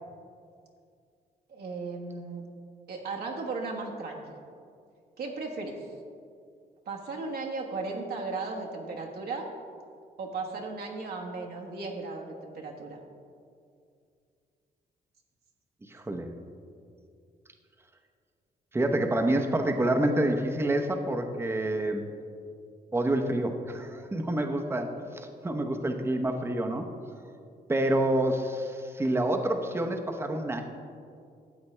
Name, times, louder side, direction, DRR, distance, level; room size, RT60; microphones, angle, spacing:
voice 1, 1.5-2.4 2.9-4.2 5.2-5.7 6.9-9.5 10.2-13.0, right 3 dB, 75° right, -1 dB, 1.3 m, -36 dB
voice 2, 15.8-16.3 18.7-22.1 22.9-26.9 27.7-30.6, right 1 dB, 15° right, 4 dB, 0.8 m, -28 dB
13.0 x 8.1 x 3.3 m, 2.3 s
cardioid pair, 110°, 16 cm